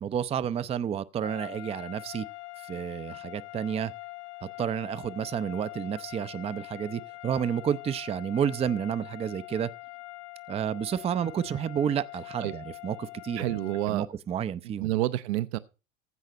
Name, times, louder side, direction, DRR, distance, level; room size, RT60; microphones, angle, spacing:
voice 1, 0.0-2.3 2.6-3.9 4.4-9.7 10.5-13.6 13.9-14.9, right 8 dB, 15° right, 0.5 m, -30 dB
sound 1, 1.2-14.1, left 23 dB, 60° left, 0.7 m, -44 dB
voice 2, 13.4-14.1 14.8-15.6, right 15 dB, 60° right, 0.7 m, -28 dB
15.5 x 5.6 x 6.2 m
figure-of-eight pair, 80°, 38 cm